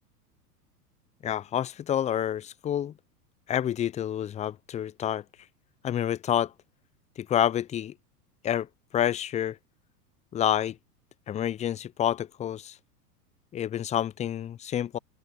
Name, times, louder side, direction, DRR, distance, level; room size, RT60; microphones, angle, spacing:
voice 1, 1.2-2.9 3.5-5.2 5.8-6.5 7.2-7.9 8.4-8.7 8.9-9.6 10.3-10.8 11.3-12.8 13.5-15.0, left 10 dB, 15° left, 0.6 m, -28 dB
open air
hypercardioid pair, 100°, 48 cm